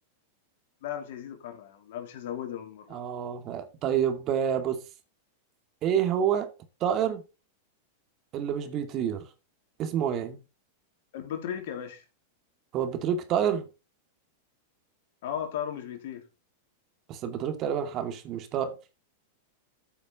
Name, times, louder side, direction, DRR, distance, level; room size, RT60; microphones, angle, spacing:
voice 1, 0.8-3.0 11.1-12.0 15.2-16.2, left 9 dB, 65° left, 3.1 m, -36 dB
voice 2, 2.9-4.8 5.8-6.5 6.8-7.2 8.3-9.3 9.8-10.4 12.7-13.7 17.1-18.7, right 9 dB, 40° right, 2.5 m, -28 dB
13.5 x 7.0 x 4.0 m
hypercardioid pair, 110°, 0 cm